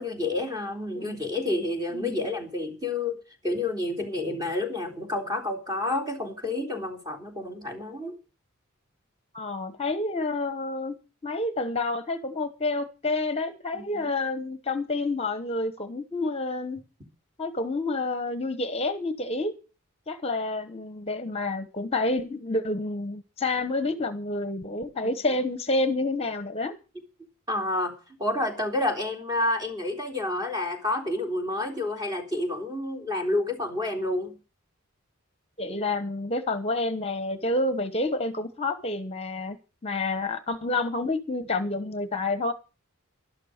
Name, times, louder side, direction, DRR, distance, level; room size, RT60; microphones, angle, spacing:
voice 1, 0.0-8.2 13.7-14.1 27.5-27.9 28.2-34.3, left 2 dB, 20° right, 3.7 m, -29 dB
voice 2, 1.9-2.3 9.3-10.9 11.2-16.8 17.4-19.5 20.1-26.7 35.6-39.6 39.8-42.5, left 2 dB, 30° left, 1.1 m, -29 dB
12.5 x 12.0 x 6.6 m
head